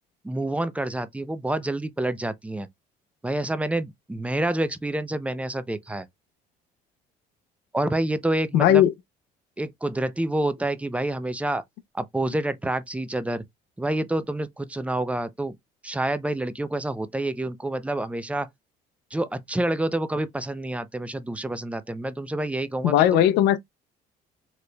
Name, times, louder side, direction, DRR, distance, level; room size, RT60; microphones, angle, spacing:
voice 1, 0.2-2.7 3.2-6.1 7.7-8.8 9.6-11.6 11.9-13.4 13.8-15.6 15.8-18.5 19.1-23.2, right 1 dB, 10° right, 0.5 m, -28 dB
voice 2, 8.5-8.9 22.8-23.6, left 12 dB, 85° left, 0.5 m, -18 dB
4.2 x 3.1 x 2.2 m
cardioid pair, 110°, 17 cm